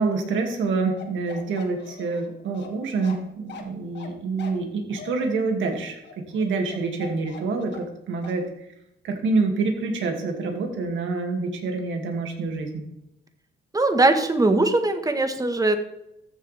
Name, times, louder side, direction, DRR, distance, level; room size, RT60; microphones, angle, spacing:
voice 1, 0.0-6.0 6.3-8.4 9.0-12.8, right 3 dB, 75° right, 2 dB, 2.4 m, -26 dB
Bark, 1.0-8.0 8.2-8.4, left 6 dB, 60° left, 1.8 m, -42 dB
voice 2, 13.7-15.8, right 2 dB, 15° right, 7 dB, 1.4 m, -20 dB
14.0 x 7.1 x 3.5 m, 0.83 s
cardioid pair, 90°, 20 cm